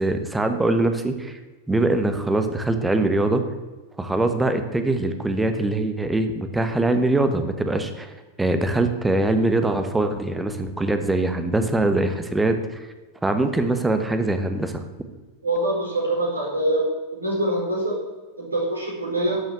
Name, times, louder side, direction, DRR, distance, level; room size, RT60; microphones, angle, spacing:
voice 1, 0.0-1.4 1.7-3.4 4.0-8.1 8.4-12.5 13.2-14.8, right 2 dB, 10° right, 8 dB, 1.3 m, -22 dB
voice 2, 15.4-18.0 18.4-19.4, right 1 dB, 80° right, -3 dB, 4.4 m, -24 dB
11.5 x 7.1 x 7.9 m, 1.3 s
figure-of-eight pair, 90°, 0 cm